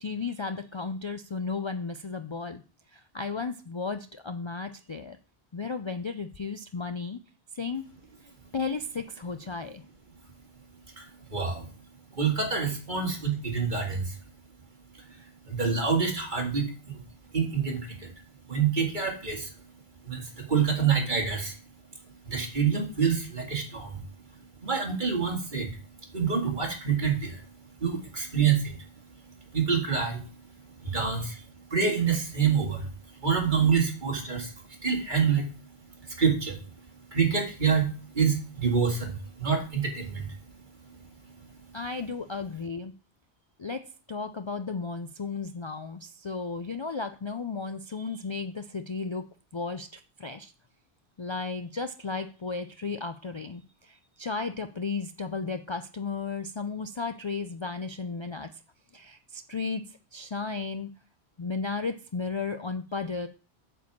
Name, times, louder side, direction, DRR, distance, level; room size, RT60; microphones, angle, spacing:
voice 1, 0.0-2.6 2.9-5.2 5.5-7.2 7.5-7.8 8.5-9.8 30.8-31.4 41.7-42.9 43.6-49.3 49.5-50.5 51.2-58.6 58.9-60.9 61.4-63.3, left 4 dB, 45° left, 8 dB, 0.4 m, -34 dB
voice 2, 11.0-11.7 12.2-14.2 15.1-15.2 15.5-17.0 17.3-18.1 18.5-19.5 20.0-21.5 22.2-24.0 24.6-25.7 26.1-27.4 27.8-28.8 29.5-30.2 30.8-31.4 31.7-32.9 33.2-34.5 34.8-35.5 36.0-36.6 37.1-40.3, right 6 dB, 45° right, 2 dB, 2.2 m, -27 dB
8.3 x 4.7 x 7.2 m, 0.35 s
omnidirectional pair, 1.1 m